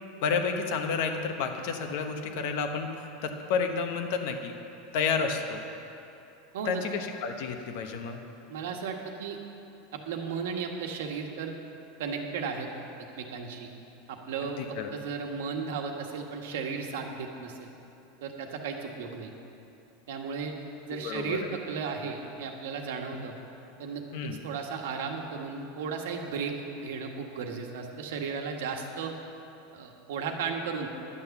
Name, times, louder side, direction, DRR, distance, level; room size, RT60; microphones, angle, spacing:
voice 1, 0.2-4.5 4.9-5.6 6.6-8.2 14.6-14.9 21.0-21.4 24.1-24.4, left 5 dB, 55° left, 5 dB, 1.1 m, -30 dB
voice 2, 8.5-9.4 9.9-11.5 12.0-12.7 13.2-13.7 14.1-14.6 14.9-17.7 18.2-19.3 20.1-20.5 20.9-23.4 23.8-29.1 29.7-30.9, right 5 dB, 80° right, 3 dB, 1.4 m, -35 dB
11.0 x 8.5 x 7.1 m, 2.8 s
supercardioid pair, 170°, 0 cm